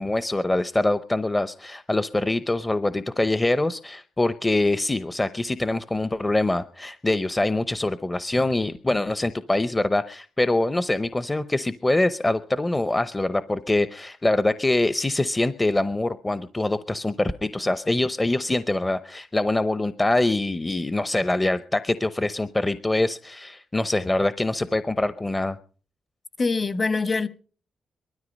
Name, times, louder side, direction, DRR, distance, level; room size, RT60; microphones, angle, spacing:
voice 1, 0.0-25.6, left 2 dB, 15° left, 0.7 m, -24 dB
voice 2, 26.4-27.3, left 4 dB, 35° left, 1.3 m, -24 dB
20.0 x 13.0 x 5.2 m
cardioid pair, 90°, 0 cm